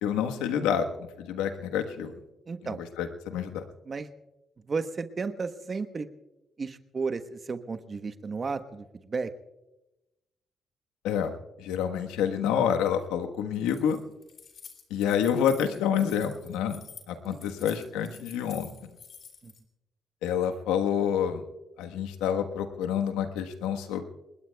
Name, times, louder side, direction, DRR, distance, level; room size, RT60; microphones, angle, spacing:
voice 1, 0.0-2.1 3.0-3.6 11.0-14.0 14.9-16.8 17.1-18.7 20.2-21.4 21.8-24.0, left 8 dB, 90° left, 5 dB, 1.3 m, -28 dB
voice 2, 2.5-2.8 3.8-4.1 4.7-6.1 6.6-9.3 17.3-17.5 19.4-19.5, right 4 dB, 45° right, 10 dB, 1.1 m, -33 dB
Keys jangling, 13.5-19.6, left 7 dB, 60° left, 2.9 m, -49 dB
28.5 x 21.0 x 2.3 m, 0.99 s
supercardioid pair, 55°, 0 cm